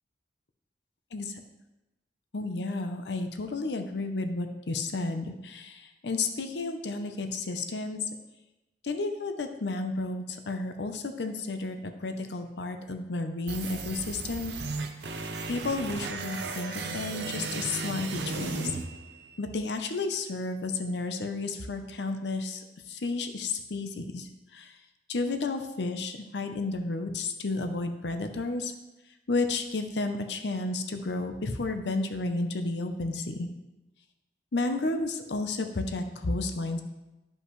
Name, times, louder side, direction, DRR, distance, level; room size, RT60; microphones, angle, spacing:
voice 1, 2.3-8.0 8.8-14.5 15.5-18.7 19.4-22.6 22.9-24.8 25.1-28.7 29.3-33.5 34.5-36.8, left 3 dB, 75° left, 7 dB, 0.7 m, -32 dB
sound 1, 13.5-19.5, right 3 dB, 70° right, 0.7 m, -36 dB
11.5 x 5.3 x 3.2 m, 1.0 s
head